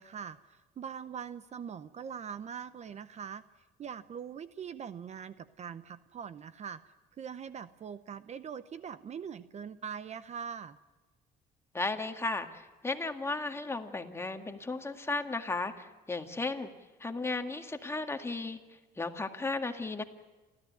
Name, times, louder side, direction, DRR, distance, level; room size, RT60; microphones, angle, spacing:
voice 1, 0.0-3.4 3.8-6.8 7.2-10.8, right 7 dB, 40° right, 14 dB, 0.7 m, -42 dB
voice 2, 11.7-12.5 12.8-16.7 17.0-18.6 19.0-20.0, left 3 dB, 15° left, 5 dB, 1.9 m, -34 dB
30.0 x 13.5 x 9.4 m, 1.3 s
cardioid pair, 110°, 17 cm